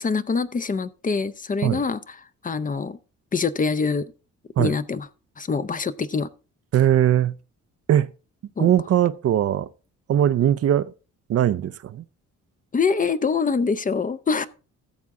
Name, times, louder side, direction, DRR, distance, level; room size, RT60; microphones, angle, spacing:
voice 1, 0.0-3.0 3.3-4.1 4.6-5.1 5.4-6.3 8.6-8.7 12.7-14.5, left 5 dB, 25° left, 0.6 m, -25 dB
voice 2, 6.7-7.3 7.9-8.1 8.6-9.7 10.1-10.9 11.3-12.0, right 11 dB, 50° right, 0.5 m, -20 dB
14.0 x 7.3 x 3.7 m
cardioid pair, 90°, 30 cm